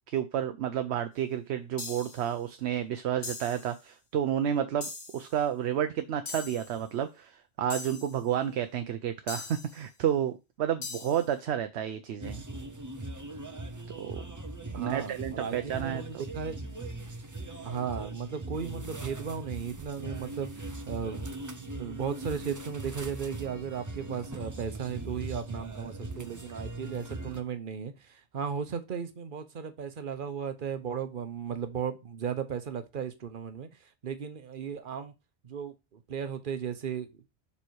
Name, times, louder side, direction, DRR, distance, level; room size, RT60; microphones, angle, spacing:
voice 1, 0.1-12.4 14.0-14.3 14.7-16.2, right 10 dB, 75° right, 8 dB, 0.9 m, -31 dB
sound 1, 1.8-2.3 3.2-3.7 4.8-5.3 6.3-6.8 7.7-8.2 9.3-9.8 10.8-11.3, left 4 dB, 80° left, 1.9 m, -41 dB
sound 2, 12.2-27.4, right 2 dB, 20° right, 0.6 m, -40 dB
voice 2, 14.7-16.6 17.6-33.7 34.0-35.1 35.4-37.1, right 7 dB, 50° right, 9 dB, 1.0 m, -36 dB
7.0 x 3.4 x 4.5 m, 0.25 s
omnidirectional pair, 1.1 m